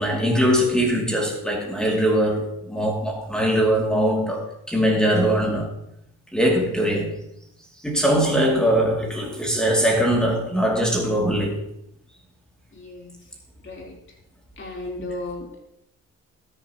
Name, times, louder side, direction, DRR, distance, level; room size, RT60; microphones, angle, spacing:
voice 1, 0.0-5.7 6.3-7.2 7.8-11.6, equal, 5° left, 2.5 m, -21 dB
voice 2, 12.7-13.3 13.6-13.9 14.6-15.6, left 2 dB, 40° left, 3.7 m, -35 dB
13.0 x 10.0 x 3.0 m
cardioid pair, 90°, 30 cm